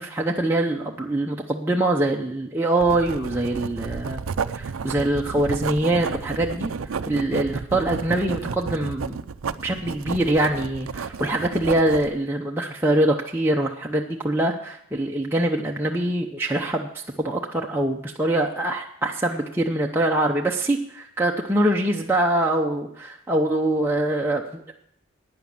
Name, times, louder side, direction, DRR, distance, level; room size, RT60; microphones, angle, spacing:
voice 1, 0.0-4.2 4.5-6.7 7.1-9.2 9.6-24.7, right 1 dB, 10° right, -1 dB, 0.7 m, -24 dB
Writing, 2.8-12.1, right 5 dB, 80° right, 0.5 m, -31 dB
11.5 x 9.5 x 7.3 m, 0.72 s
head